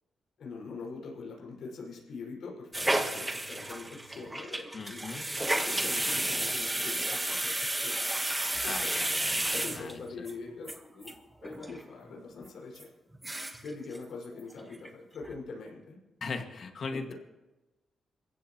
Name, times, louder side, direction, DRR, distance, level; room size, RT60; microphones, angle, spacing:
voice 1, 0.4-7.5 7.8-7.9 8.6-9.1 9.5-12.9 13.6-16.0 16.9-17.1, left 4 dB, 75° left, -2 dB, 5.5 m, -43 dB
sound 1, 2.7-10.3 10.7-10.8 11.0-11.1 11.4-11.8 12.1-12.2 12.7-12.8 13.1-13.7 13.9-14.0 14.4-14.9 15.2-15.3, right 1 dB, 15° right, 1.4 m, -32 dB
voice 2, 4.7-5.3 8.6-9.9 10.2-10.3 16.2-17.1, left 4 dB, 55° left, 5 dB, 2.0 m, -38 dB
27.5 x 15.0 x 3.1 m, 1.1 s
cardioid pair, 95°, 0 cm